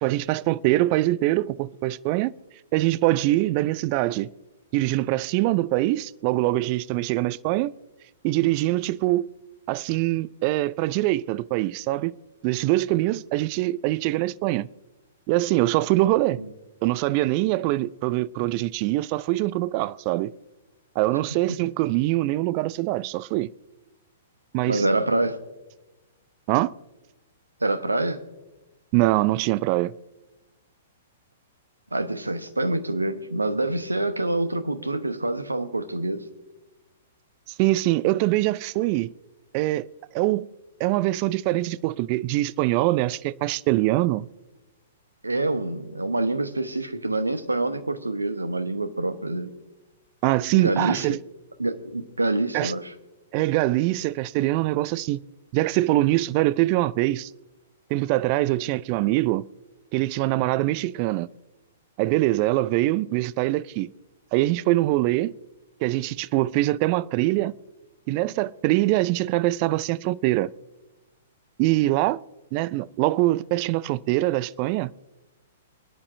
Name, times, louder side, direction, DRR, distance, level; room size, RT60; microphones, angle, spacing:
voice 1, 0.0-2.3 2.7-4.3 4.7-7.7 8.2-9.3 9.7-12.1 12.4-14.7 15.3-16.4 16.8-20.3 21.0-23.5 24.5-24.8 26.5-26.7 28.9-29.9 37.5-39.1 39.5-39.9 40.1-40.5 40.8-44.3 50.2-51.2 52.5-52.7 53.3-55.2 55.5-57.3 57.9-59.4 59.9-61.3 62.0-63.9 64.3-65.3 65.8-67.5 68.1-70.5 71.6-72.2 72.5-74.9, right 17 dB, 40° right, 0.3 m, -23 dB
voice 2, 24.6-25.4 27.6-28.2 31.9-36.2 45.2-49.5 50.5-51.2 51.6-52.9, right 2 dB, 85° right, 1.1 m, -26 dB
25.5 x 9.9 x 2.6 m
figure-of-eight pair, 110°, 0 cm